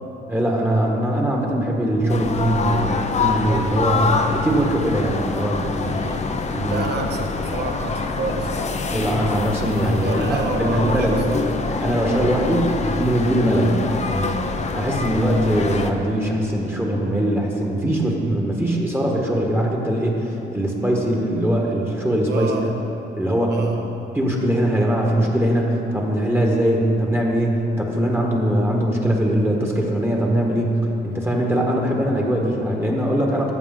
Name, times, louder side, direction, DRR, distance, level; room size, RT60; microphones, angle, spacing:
voice 1, 0.3-6.1 6.5-6.9 8.9-11.2 11.8-14.3 14.7-22.7 23.2-23.6 24.1-33.5, right 1 dB, 10° right, -1 dB, 1.4 m, -21 dB
sound 1, 2.1-15.9, left 4 dB, 35° left, 0.7 m, -25 dB
voice 2, 5.8-6.3 6.7-8.7 10.0-11.5 12.0-12.3 22.3-22.7 23.5-23.9, right 3 dB, 55° right, 2 dB, 1.3 m, -29 dB
14.5 x 6.5 x 3.8 m, 3.0 s
cardioid pair, 90°, 20 cm